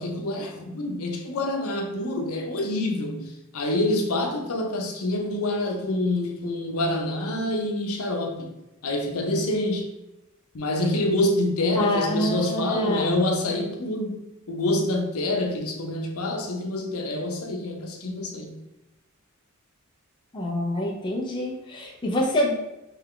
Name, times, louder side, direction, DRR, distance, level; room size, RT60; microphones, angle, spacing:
voice 1, 0.0-8.5 8.8-9.9 10.5-14.2 14.5-18.6, left 1 dB, 85° left, 0.8 m, -26 dB
voice 2, 11.7-13.3 20.3-22.5, left 1 dB, 20° left, 0.7 m, -26 dB
3.5 x 3.3 x 3.7 m
head